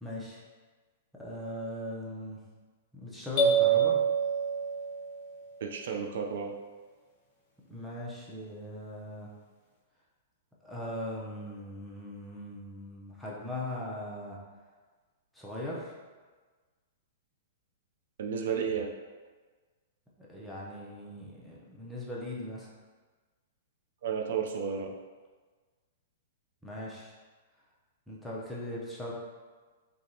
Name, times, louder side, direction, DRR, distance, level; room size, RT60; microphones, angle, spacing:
voice 1, 0.0-0.4 1.2-2.4 2.9-4.0 7.7-9.3 10.6-14.4 15.3-15.9 20.2-22.7 26.6-27.1 28.1-29.1, left 1 dB, ahead, -6 dB, 0.6 m, -39 dB
sound 1, 3.4-5.3, right 6 dB, 35° left, 0.8 m, -26 dB
voice 2, 5.6-6.5 18.2-18.9 24.0-25.0, right 6 dB, 70° right, 2 dB, 0.4 m, -32 dB
3.4 x 2.9 x 2.7 m, 1.4 s
hypercardioid pair, 150°, 0 cm